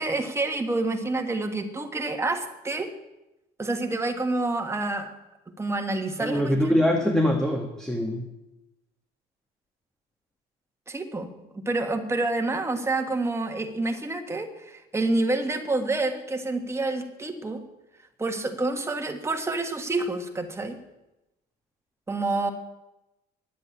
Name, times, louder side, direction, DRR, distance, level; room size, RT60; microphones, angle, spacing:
voice 1, 0.0-2.9 3.6-5.1 5.6-6.7 10.9-17.6 18.2-20.8 22.1-22.5, right 2 dB, 15° right, 4 dB, 1.7 m, -28 dB
voice 2, 6.2-8.2, left 1 dB, 5° left, 2 dB, 1.6 m, -23 dB
10.0 x 8.3 x 9.9 m, 0.96 s
cardioid pair, 110°, 17 cm